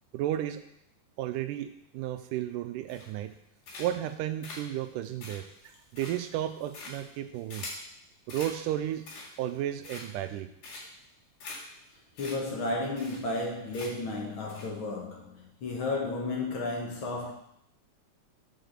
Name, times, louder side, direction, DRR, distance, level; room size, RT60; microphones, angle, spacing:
voice 1, 0.1-0.6 1.2-3.3 3.8-5.4 5.9-7.7 8.3-9.0 9.4-10.5, right 12 dB, 80° right, 9 dB, 2.0 m, -33 dB
sound 1, 2.9-3.3 3.6-4.1 4.4-7.9 8.3-8.6 8.9-9.5 9.8-10.3 10.6-11.0 11.4-11.6 11.8-11.9 12.2-12.3 12.6-12.7 13.0-13.4 13.7-14.1 14.5-14.7, left 3 dB, 85° left, 3.7 m, -44 dB
voice 2, 12.2-17.3, left 2 dB, 55° left, -1 dB, 1.5 m, -33 dB
6.5 x 4.9 x 6.5 m, 0.74 s
omnidirectional pair, 3.9 m